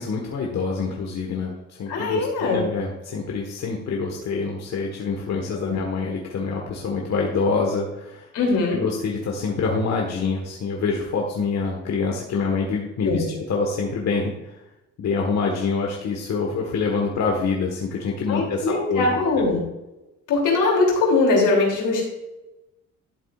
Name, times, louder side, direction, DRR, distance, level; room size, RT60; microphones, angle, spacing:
voice 1, 0.0-8.3 8.7-14.6 15.0-19.2, left 4 dB, 60° left, 0 dB, 1.5 m, -26 dB
voice 2, 1.9-2.6 5.6-5.8 8.3-8.8 13.0-13.3 18.3-19.6 20.3-22.0, left 3 dB, 85° left, -1 dB, 3.1 m, -21 dB
12.0 x 7.3 x 2.5 m, 0.98 s
cardioid pair, 90°, 30 cm